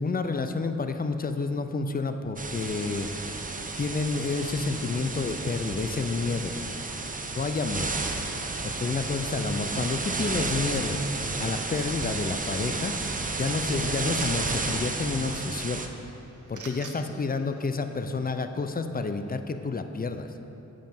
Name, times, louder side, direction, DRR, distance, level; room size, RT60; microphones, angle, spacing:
voice 1, 0.0-3.1 3.8-6.5 7.4-7.9 8.6-11.0 11.4-13.1 13.4-15.8 16.5-20.3, left 4 dB, 30° left, 8 dB, 0.5 m, -29 dB
sound 1, 2.4-15.9, right 3 dB, 25° right, 0.6 m, -32 dB
sound 2, 13.0-18.4, right 4 dB, 70° right, 0.9 m, -51 dB
7.5 x 5.1 x 5.9 m, 2.9 s
cardioid pair, 65°, 31 cm